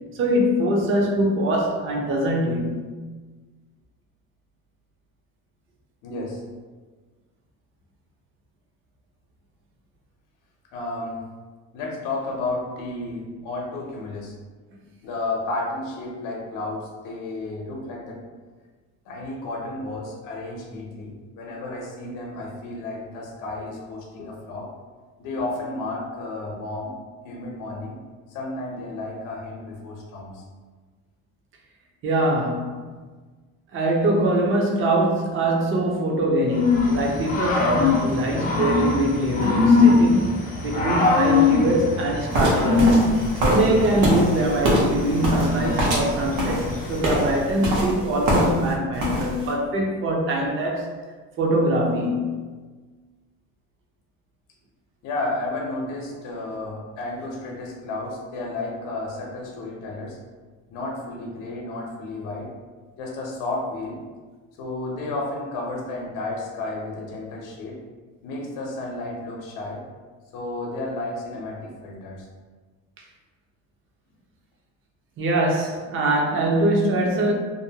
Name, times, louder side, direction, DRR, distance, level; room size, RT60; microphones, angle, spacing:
voice 1, 0.1-2.9 32.0-32.9 33.7-40.3 40.6-43.0 43.4-50.9 51.4-52.4 73.0-73.1 75.2-77.3, right 1 dB, 40° right, 0 dB, 0.5 m, -23 dB
voice 2, 6.0-6.4 10.7-11.2 11.7-14.3 15.0-18.2 19.1-24.7 25.2-26.9 27.2-28.0 28.3-30.4 55.0-60.2 60.7-62.5 63.0-64.0 64.6-67.8 68.2-69.9 70.3-72.3, left 2 dB, 75° left, -1 dB, 0.7 m, -32 dB
Growling / Cricket, 36.5-47.5, left 3 dB, 25° left, 0.4 m, -22 dB
sound 1, 42.3-48.7 49.0-49.5, equal, 90° right, 0.9 m, -24 dB
2.6 x 2.2 x 2.7 m, 1.4 s
cardioid pair, 140°, 32 cm